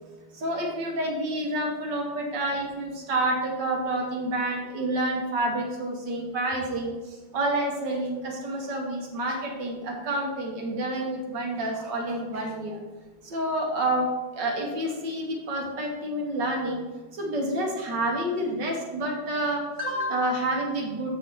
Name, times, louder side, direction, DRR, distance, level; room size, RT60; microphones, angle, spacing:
voice 1, 0.3-12.8 13.2-16.8 17.1-21.1, right 1 dB, 60° right, 1 dB, 1.7 m, -29 dB
7.1 x 6.4 x 4.4 m, 1.2 s
omnidirectional pair, 2.4 m